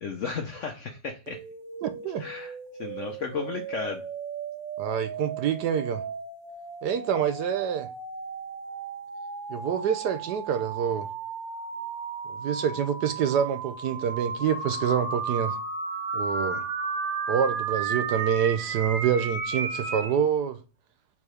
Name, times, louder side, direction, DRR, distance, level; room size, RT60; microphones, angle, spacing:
voice 1, 0.0-1.4 2.2-2.5 2.8-4.0, left 5 dB, 60° left, 0.8 m, -34 dB
sound 1, 1.3-20.2, right 5 dB, 85° right, 1.8 m, -34 dB
voice 2, 1.8-2.2 4.8-6.0 6.8-7.9 9.5-11.1 12.3-15.6 16.1-16.6 17.3-20.6, right 8 dB, 70° right, 1.2 m, -27 dB
4.6 x 4.1 x 4.9 m
omnidirectional pair, 2.0 m